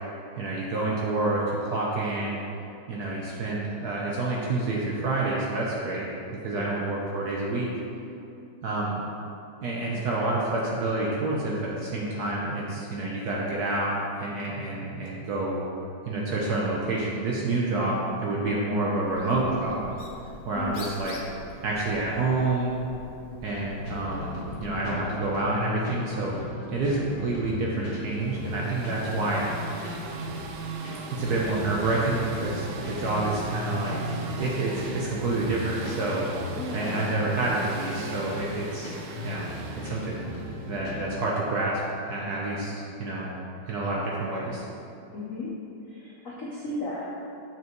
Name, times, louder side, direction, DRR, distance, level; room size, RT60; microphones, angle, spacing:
voice 1, 0.4-2.4 2.9-6.1 6.4-7.7 8.6-9.0 9.6-15.7 16.0-19.9 20.4-21.2 21.6-22.8 23.4-26.3 26.7-29.4 31.1-36.3 36.7-39.4 39.8-40.2 40.7-41.8 42.0-43.3 43.7-44.6, right 2 dB, 65° right, -4 dB, 1.0 m, -28 dB
voice 2, 6.5-6.9 18.4-18.6 20.5-20.9 36.6-37.0 45.1-45.5 45.9-47.1, left 2 dB, 60° left, -6 dB, 0.8 m, -36 dB
Bird, 19.0-24.9, left 2 dB, 75° left, 1.7 m, -45 dB
sound 1, 23.8-41.1, left 4 dB, 35° left, 1.1 m, -37 dB
sound 2, 28.1-41.0, right 4 dB, 85° right, 1.5 m, -39 dB
7.3 x 5.8 x 3.0 m, 2.7 s
omnidirectional pair, 2.3 m